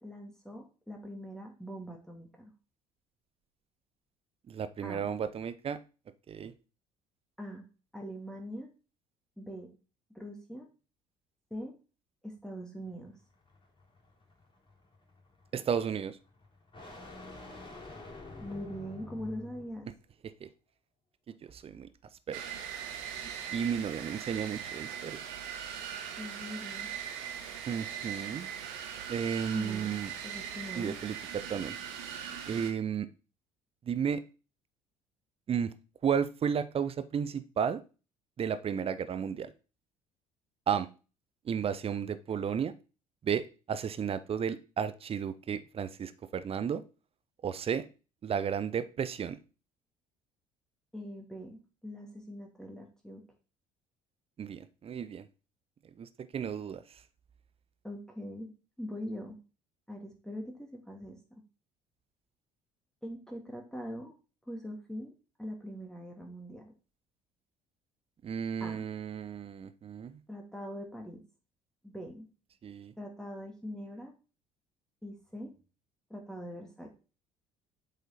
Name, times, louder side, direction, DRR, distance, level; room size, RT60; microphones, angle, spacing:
voice 1, 0.0-2.5 4.8-5.1 7.4-7.6 7.9-8.7 9.4-9.7 10.1-10.7 11.5-11.7 12.2-13.1 18.4-19.9 26.2-26.9 29.5-30.0 30.2-30.9 50.9-53.2 57.8-58.5 58.8-59.4 59.9-61.4 63.0-64.1 64.5-65.1 65.4-66.7 68.6-68.9 70.3-71.2 71.8-72.3 73.0-74.1 75.0-75.5 76.1-76.9, equal, 5° left, 1 dB, 1.9 m, -42 dB
voice 2, 4.5-5.8 6.3-6.5 15.5-16.2 20.2-20.5 21.3-21.9 22.3-22.4 23.5-25.2 27.7-28.5 29.1-30.1 30.8-31.7 32.5-33.1 33.8-34.2 35.5-35.7 36.0-37.8 38.4-39.5 40.7-40.9 41.4-42.7 43.2-46.8 47.4-47.8 48.2-49.4 54.4-55.3 56.0-57.0 68.2-70.2 72.6-72.9, right 7 dB, 30° right, 14 dB, 0.7 m, -33 dB
sound 1, 12.9-19.9, left 2 dB, 30° left, 3.6 m, -49 dB
sound 2, 22.3-32.7, right 8 dB, 65° right, 1.1 m, -40 dB
7.7 x 5.1 x 4.2 m, 0.33 s
figure-of-eight pair, 55°, 18 cm